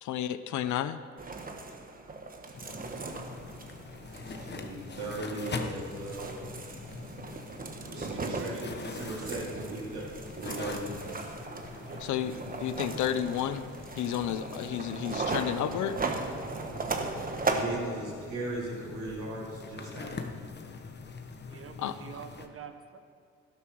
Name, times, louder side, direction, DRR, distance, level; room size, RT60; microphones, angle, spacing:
voice 1, 0.0-1.0 12.0-12.3 12.6-13.7 14.0-16.0 21.8-21.9, left 11 dB, 75° left, 13 dB, 0.7 m, -31 dB
sound 1, 1.2-17.6, right 3 dB, 30° right, 1.3 m, -37 dB
sound 2, 2.5-22.5, left 4 dB, 35° left, 1.1 m, -43 dB
voice 2, 4.3-6.5 7.8-10.1 10.4-11.1 17.5-20.3, right 2 dB, 80° right, -7 dB, 3.4 m, -38 dB
voice 3, 7.9-8.6 9.2-9.5 11.8-12.1 16.5-16.9 19.2-19.5 21.5-23.0, right 6 dB, 45° right, 8 dB, 1.2 m, -47 dB
12.5 x 12.0 x 4.6 m, 2.3 s
cardioid pair, 90°, 30 cm